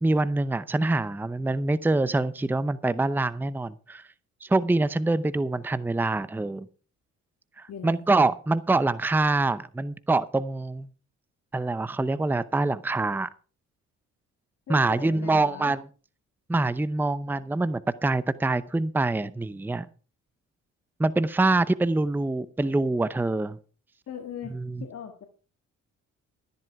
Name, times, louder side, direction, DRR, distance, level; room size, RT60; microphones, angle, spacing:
voice 1, 0.0-4.0 4.4-6.7 7.6-10.9 11.5-13.3 14.7-15.8 16.5-19.9 21.0-23.6 24.5-24.8, right 2 dB, 5° right, 16 dB, 0.6 m, -25 dB
voice 2, 7.7-8.1 14.7-15.7 24.1-24.5 24.8-25.3, left 8 dB, 55° left, 5 dB, 1.8 m, -39 dB
13.0 x 11.0 x 4.7 m, 0.37 s
cardioid pair, 90°, 30 cm